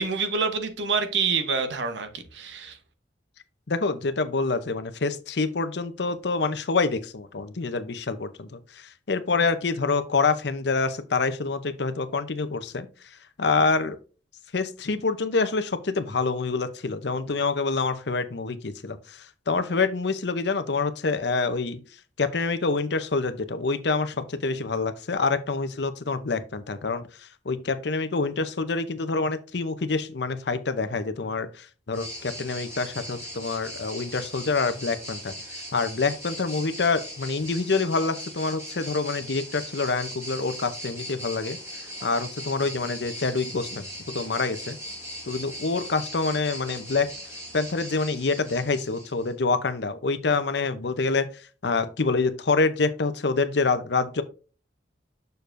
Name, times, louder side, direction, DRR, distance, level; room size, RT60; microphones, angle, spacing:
voice 1, 0.0-2.8, right 4 dB, 75° right, 1.0 m, -27 dB
voice 2, 3.7-12.9 13.4-14.0 14.5-21.8 22.2-35.3 35.7-41.6 42.0-43.9 44.1-44.8 45.3-47.1 47.5-51.3 51.6-54.2, left 4 dB, 65° left, 0.7 m, -26 dB
sound 1, 31.9-49.3, equal, 15° right, 4.0 m, -39 dB
6.6 x 6.6 x 2.6 m
head